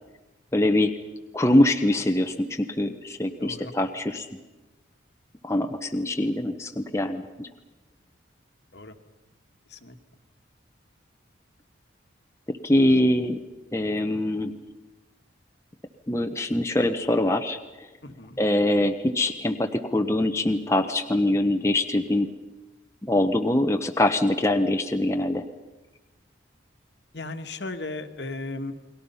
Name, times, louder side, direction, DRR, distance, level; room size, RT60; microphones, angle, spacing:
voice 1, 0.5-0.9 1.3-4.3 5.4-7.5 12.6-13.4 13.7-14.5 16.1-17.6 18.4-22.3 23.0-25.5, left 1 dB, 15° left, 5 dB, 0.9 m, -23 dB
voice 2, 3.4-3.7 8.7-9.0 9.7-10.0 18.0-18.4 27.1-28.7, left 2 dB, 60° left, 8 dB, 1.6 m, -36 dB
30.0 x 21.5 x 5.6 m, 1.1 s
head